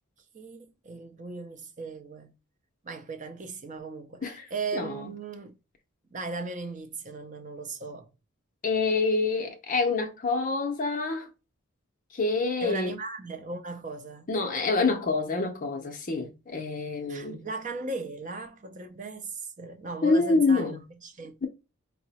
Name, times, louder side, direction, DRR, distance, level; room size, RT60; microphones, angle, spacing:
voice 1, 0.3-2.3 2.8-5.6 6.1-8.1 12.6-14.3 17.1-21.5, right 3 dB, 35° right, 0.5 m, -37 dB
voice 2, 8.6-11.3 12.1-12.9 14.3-17.4 20.0-20.8, left 3 dB, 35° left, 0.5 m, -26 dB
4.7 x 2.0 x 4.1 m
head